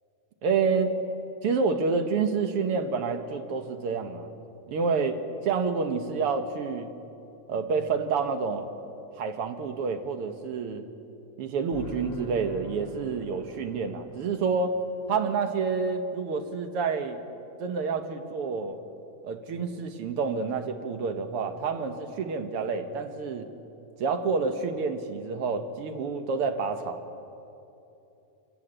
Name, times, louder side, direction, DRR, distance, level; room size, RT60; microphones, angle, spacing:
voice 1, 0.4-0.9 1.4-4.3 4.7-6.9 7.5-8.7 9.2-10.9 11.4-14.8 15.1-17.2 17.6-18.8 19.2-23.5 24.0-27.0, right 5 dB, 60° right, 7 dB, 1.6 m, -28 dB
sound 1, 11.7-15.8, right 1 dB, 30° left, 1.8 m, -45 dB
25.5 x 14.5 x 8.8 m, 2.8 s
omnidirectional pair, 3.6 m